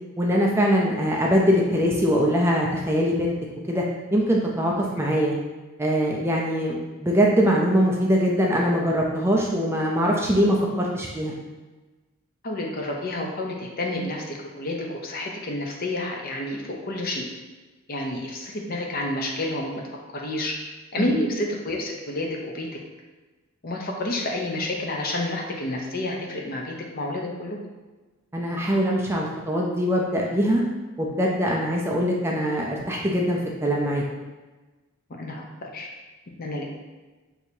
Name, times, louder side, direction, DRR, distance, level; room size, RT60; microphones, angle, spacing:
voice 1, 0.2-3.3 3.7-3.8 4.1-5.3 5.8-11.3 21.0-21.1 28.3-30.6 31.0-34.0, equal, 10° right, -2 dB, 0.4 m, -22 dB
voice 2, 12.4-17.3 17.9-19.7 20.1-20.5 20.9-22.7 23.6-27.6 35.1-35.9 36.4-36.7, left 1 dB, 45° left, 0 dB, 0.7 m, -29 dB
6.1 x 2.8 x 2.7 m, 1.2 s
head